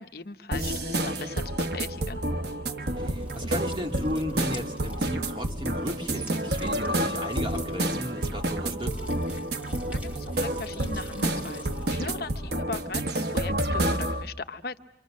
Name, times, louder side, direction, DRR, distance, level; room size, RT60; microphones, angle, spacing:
voice 1, 0.0-2.2 9.9-14.8, left 4 dB, 60° left, 8 dB, 0.8 m, -38 dB
sound 1, 0.5-14.2, right 1 dB, 60° right, 1.1 m, -29 dB
sound 2, 1.5-12.6, equal, 45° right, 7.5 m, -50 dB
sound 3, 3.0-12.1, left 2 dB, 10° right, 2.3 m, -50 dB
voice 2, 3.0-9.1, equal, 30° right, 2 dB, 2.3 m, -35 dB
26.5 x 25.5 x 6.4 m, 1.0 s
head